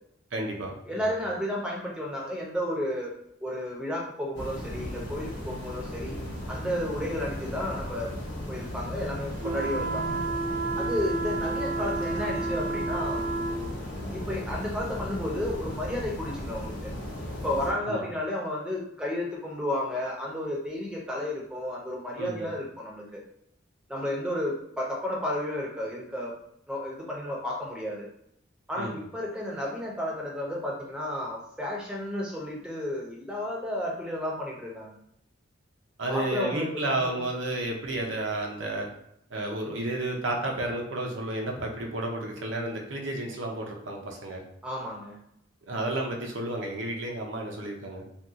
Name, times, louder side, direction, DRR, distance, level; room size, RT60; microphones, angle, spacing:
voice 1, 0.3-1.1 17.9-18.1 22.2-22.5 28.8-29.0 36.0-38.9 39.3-44.4 45.6-48.1, right 2 dB, 70° right, 1 dB, 0.7 m, -32 dB
voice 2, 0.9-3.1 3.4-6.2 6.5-8.1 8.5-10.2 10.8-13.3 14.0-16.9 17.4-23.2 23.9-26.3 26.7-28.1 28.7-35.0 36.1-37.3 44.6-45.2, left 1 dB, 5° right, -3 dB, 0.6 m, -32 dB
sound 1, 4.3-17.7, left 1 dB, 60° left, 1.0 m, -36 dB
sound 2, 9.4-13.7, right 3 dB, 40° right, 0.3 m, -31 dB
2.7 x 2.3 x 3.5 m, 0.75 s
head